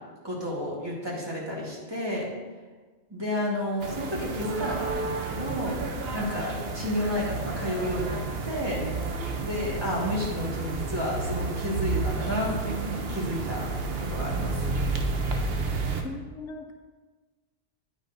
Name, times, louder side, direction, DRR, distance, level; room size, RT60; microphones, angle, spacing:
voice 1, 0.2-2.3 3.1-8.8 9.3-13.7 14.0-14.7, left 1 dB, 20° right, -5 dB, 1.8 m, -31 dB
sound 1, 3.8-16.0, right 3 dB, 60° right, 1.0 m, -31 dB
voice 2, 16.0-16.7, left 3 dB, 85° left, 4 dB, 1.2 m, -38 dB
9.7 x 8.9 x 2.6 m, 1.4 s
omnidirectional pair, 1.2 m